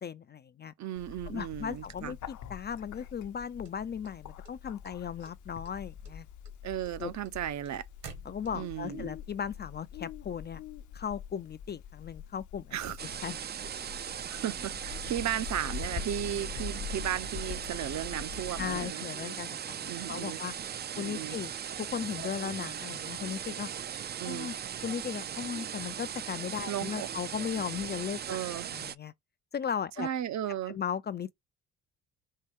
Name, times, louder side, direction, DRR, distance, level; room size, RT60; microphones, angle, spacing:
voice 1, 0.0-0.7 1.3-6.3 7.0-7.1 8.2-10.6 10.9-12.8 13.2-13.4 18.6-20.5 21.0-23.7 24.2-24.6 24.8-29.1 29.5-30.1 30.7-31.3, left 7 dB, 30° left, 0.4 m, -37 dB
voice 2, 0.8-2.2 6.6-7.8 8.5-9.1 12.7-13.0 14.3-19.1 19.9-20.4 21.0-21.4 24.2-24.5 26.7-27.1 28.3-28.7 30.0-30.8, right 11 dB, 55° right, 0.8 m, -35 dB
Bird, 1.0-18.9, left 8 dB, 55° left, 0.8 m, -44 dB
sound 1, 3.6-4.9 5.2-5.8 6.0-8.9, right 7 dB, 70° right, 1.8 m, -50 dB
sound 2, 13.0-29.0, right 9 dB, 30° right, 0.4 m, -39 dB
5.5 x 2.2 x 3.6 m
hypercardioid pair, 55°, 35 cm